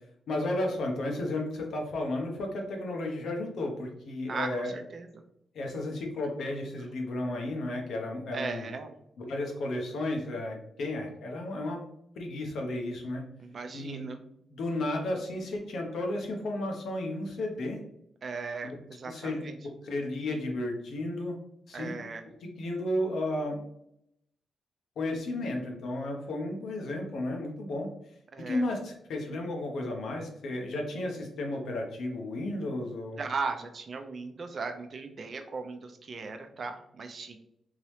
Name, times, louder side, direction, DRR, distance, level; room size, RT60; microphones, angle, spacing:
voice 1, 0.3-4.7 5.5-8.7 9.2-11.8 12.2-13.2 13.7-14.0 14.5-17.8 18.6-18.7 19.1-21.3 21.7-21.9 22.6-23.6 25.0-27.9 28.5-33.2, left 1 dB, 75° left, 1 dB, 1.0 m, -33 dB
voice 2, 4.3-5.2 8.3-8.9 13.4-14.2 18.2-19.6 21.7-22.2 28.3-28.7 33.2-37.4, right 4 dB, 50° right, 6 dB, 0.6 m, -37 dB
3.7 x 2.9 x 3.2 m, 0.74 s
cardioid pair, 85°, 0 cm